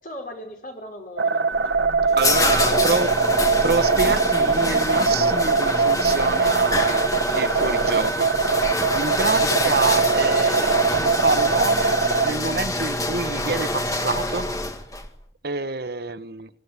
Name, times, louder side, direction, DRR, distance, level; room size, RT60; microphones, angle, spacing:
voice 1, 0.0-3.1, left 1 dB, 50° left, 5.6 m, -40 dB
sound 1, 1.2-12.3, right 4 dB, 85° right, 1.4 m, -22 dB
sound 2, 1.5-15.1, left 2 dB, 20° left, 1.8 m, -26 dB
voice 2, 2.2-3.1 3.6-7.0 7.4-8.7 8.9-12.0 12.2-14.5 15.4-16.5, right 3 dB, 60° right, 1.2 m, -27 dB
25.0 x 15.0 x 9.8 m
head